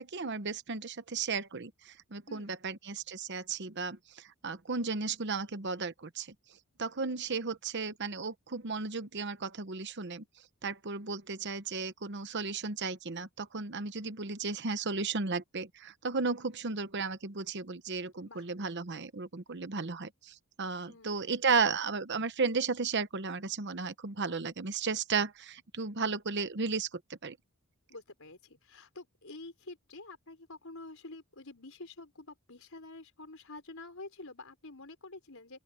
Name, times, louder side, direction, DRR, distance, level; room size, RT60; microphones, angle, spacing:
voice 1, 0.0-6.3 6.8-10.2 10.6-27.4, right 4 dB, 50° right, 1.0 m, -34 dB
voice 2, 2.3-2.6 18.3-18.5 20.9-21.4 26.0-26.1 27.9-35.6, left 2 dB, 65° left, 5.3 m, -48 dB
open air
head